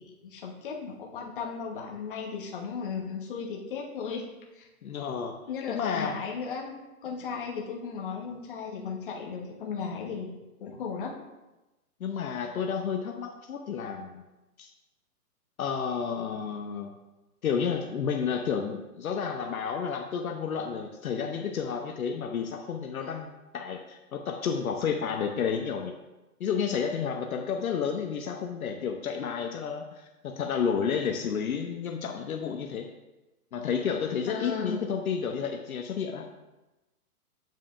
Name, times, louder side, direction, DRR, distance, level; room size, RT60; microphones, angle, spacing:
voice 1, 0.0-4.2 4.5-4.7 5.5-11.1 34.3-34.8, left 5 dB, 35° left, -2 dB, 1.1 m, -36 dB
voice 2, 4.8-5.4 5.7-6.2 12.0-14.2 14.6-14.7 15.6-16.9 17.4-25.9 26.4-32.9 33.5-36.3, left 6 dB, 65° left, 3 dB, 0.8 m, -31 dB
7.4 x 7.4 x 2.5 m, 1.0 s
hypercardioid pair, 175°, 45 cm